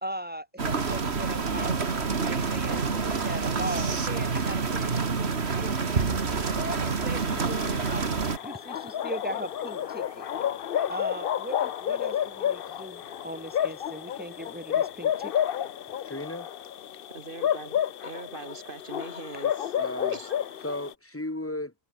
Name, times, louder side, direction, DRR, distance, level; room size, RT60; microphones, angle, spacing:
voice 1, 0.0-6.1 6.5-10.3 10.9-15.3, right 1 dB, 10° right, 3.0 m, -39 dB
sound 1, 0.6-8.4, right 5 dB, 75° right, 2.1 m, -27 dB
sound 2, 1.5-15.4, left 1 dB, 30° left, 7.9 m, -56 dB
sound 3, 7.2-20.9, left 10 dB, 60° left, 0.8 m, -31 dB
voice 2, 16.0-16.5 19.8-20.2 20.6-21.7, left 1 dB, 15° left, 1.2 m, -34 dB
voice 3, 17.1-19.8 20.1-20.4, right 3 dB, 55° right, 3.3 m, -42 dB
omnidirectional pair, 1.1 m